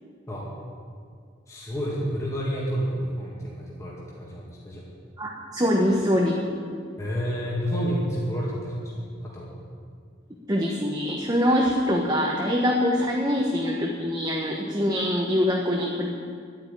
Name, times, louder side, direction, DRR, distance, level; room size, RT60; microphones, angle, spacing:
voice 1, 1.5-4.8 7.0-9.5, equal, 15° left, -6 dB, 2.3 m, -30 dB
voice 2, 5.2-6.7 10.5-16.1, equal, 20° right, -1 dB, 1.2 m, -24 dB
11.5 x 9.2 x 9.5 m, 2.2 s
head